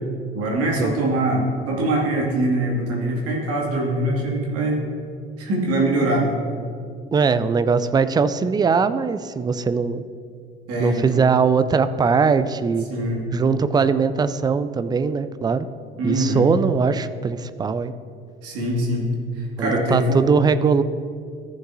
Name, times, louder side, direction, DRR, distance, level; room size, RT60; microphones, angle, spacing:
voice 1, 0.3-4.8 5.4-6.3 10.7-11.2 12.9-13.2 16.0-16.5 18.4-19.1 19.3-20.2, right 1 dB, 50° right, -2 dB, 2.3 m, -23 dB
voice 2, 7.1-10.0 10.8-12.9 13.3-15.7 16.0-17.9 19.6-20.8, right 5 dB, 15° right, 12 dB, 0.3 m, -20 dB
14.5 x 6.8 x 2.7 m, 2.3 s
figure-of-eight pair, 55°, 30 cm